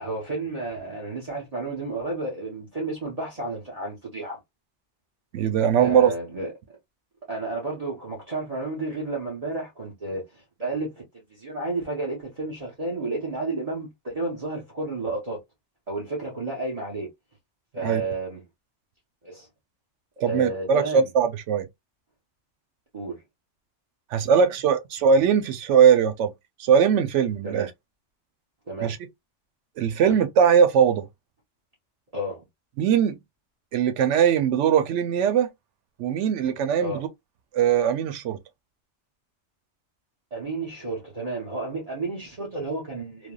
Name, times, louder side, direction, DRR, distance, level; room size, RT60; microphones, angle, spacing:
voice 1, 0.0-4.4 5.8-6.5 7.3-11.0 11.3-15.4 15.9-17.1 17.7-18.4 19.2-19.5 20.2-21.1 22.9-23.2 27.4-27.7 28.7-29.0 30.1-30.2 32.1-32.4 36.8-37.1 40.3-43.3, right 2 dB, 35° right, 0.9 m, -31 dB
voice 2, 5.3-6.1 17.8-18.0 20.2-21.7 24.1-26.3 26.6-27.7 28.8-29.0 29.8-31.1 32.8-33.2 33.7-35.5 36.0-37.1 37.5-38.4, right 7 dB, 85° right, 0.9 m, -20 dB
3.3 x 2.1 x 2.3 m
omnidirectional pair, 1.2 m